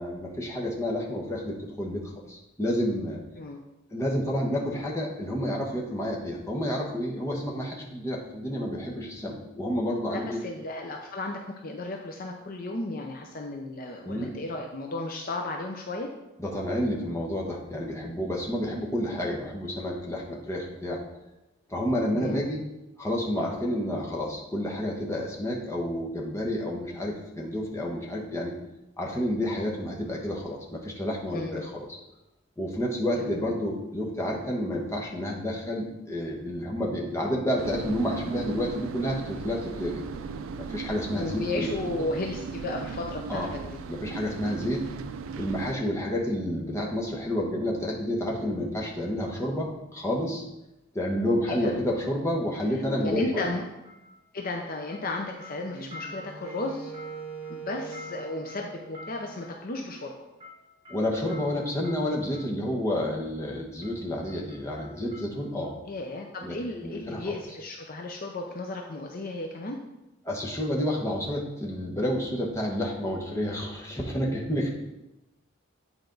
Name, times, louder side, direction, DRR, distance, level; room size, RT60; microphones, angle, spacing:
voice 1, 0.0-3.2 3.9-10.4 14.0-14.3 16.4-21.0 21.7-22.6 23.0-28.5 29.0-32.0 32.6-40.0 40.6-41.7 43.3-43.5 43.9-44.8 45.4-50.4 50.9-53.5 60.9-65.7 66.4-67.3 70.2-74.7, equal, 15° left, -2 dB, 1.0 m, -30 dB
voice 2, 10.1-16.1 22.1-22.5 31.3-31.6 33.2-33.4 41.1-43.8 51.5-51.7 53.0-53.6 54.3-56.9 57.5-60.1 65.9-69.8, left 2 dB, 45° left, 2 dB, 0.6 m, -34 dB
sound 1, 37.6-45.7, right 5 dB, 75° right, 0.4 m, -37 dB
sound 2, 53.3-54.6 54.9-62.6 63.3-63.5 63.8-65.7 66.0-66.1, left 2 dB, 25° right, 1.9 m, -49 dB
Wind instrument woodwind instrument, 55.7-59.9, right 3 dB, 85° left, 1.7 m, -42 dB
9.1 x 4.4 x 3.9 m, 0.95 s
head